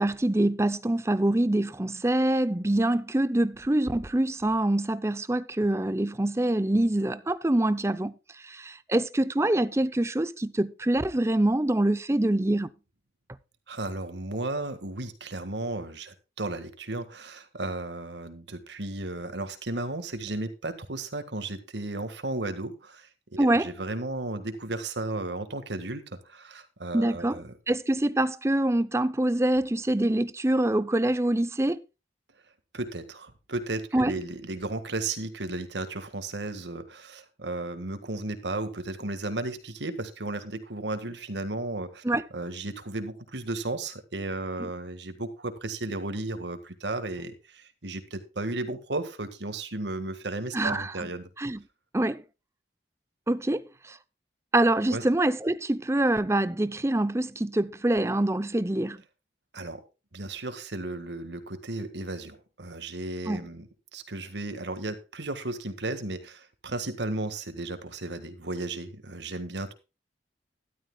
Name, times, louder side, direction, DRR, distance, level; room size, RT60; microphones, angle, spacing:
voice 1, 0.0-8.1 8.4-12.7 23.4-23.7 26.9-27.4 27.7-31.8 33.9-34.1 42.0-42.2 44.6-44.7 50.5-51.1 51.4-51.6 51.9-52.2 53.3-54.0 54.5-59.0 63.3-63.4, right 1 dB, 15° right, 0.6 m, -25 dB
voice 2, 13.7-27.5 32.7-42.0 42.3-51.3 54.9-55.0 59.5-59.8 60.1-69.7, right 2 dB, 85° right, 1.7 m, -34 dB
13.0 x 12.0 x 2.3 m
head